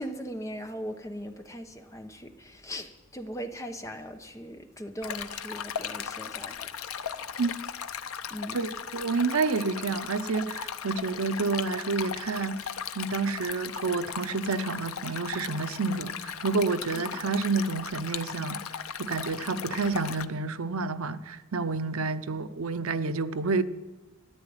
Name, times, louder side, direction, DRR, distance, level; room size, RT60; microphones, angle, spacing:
voice 1, 0.0-6.7 7.0-7.4 8.3-8.7 16.9-17.2, equal, 15° left, 1.0 m, -39 dB
Stream, 5.0-20.3, left 8 dB, 85° left, 0.7 m, -37 dB
voice 2, 8.5-12.6 13.0-18.6 19.0-23.6, right 4 dB, 85° right, 0.7 m, -29 dB
13.5 x 10.5 x 8.8 m
head